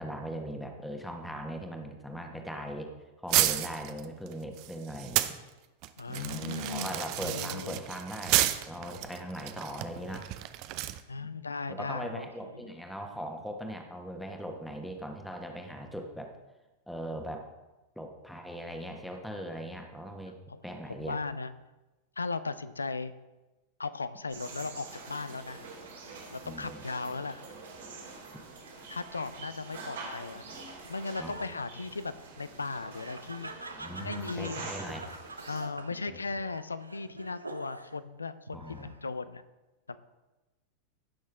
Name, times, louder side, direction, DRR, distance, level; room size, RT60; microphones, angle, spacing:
voice 1, 0.0-2.9 3.2-5.4 6.1-10.3 11.2-16.3 16.9-17.4 18.0-20.4 20.6-21.2 26.4-26.8 31.2-31.3 33.7-35.0 36.1-36.2 38.5-38.9, equal, ahead, 3 dB, 1.4 m, -40 dB
sound 1, 3.3-5.4 5.8-11.0, right 15 dB, 45° right, 0.6 m, -31 dB
voice 2, 6.0-7.8 11.1-12.3 20.5-20.6 21.0-21.5 22.2-23.1 23.8-25.6 26.3-27.4 28.9-30.4 30.9-33.5 34.0-34.6 35.5-39.4 39.9-40.0, left 4 dB, 75° left, 14 dB, 0.5 m, -37 dB
sound 2, 24.3-35.7, right 3 dB, 65° right, 2.5 m, -46 dB
Laughter, 29.6-38.0 38.5-39.1, right 2 dB, 80° right, 0.6 m, -47 dB
15.5 x 6.3 x 3.5 m, 1.1 s
figure-of-eight pair, 90°, 0 cm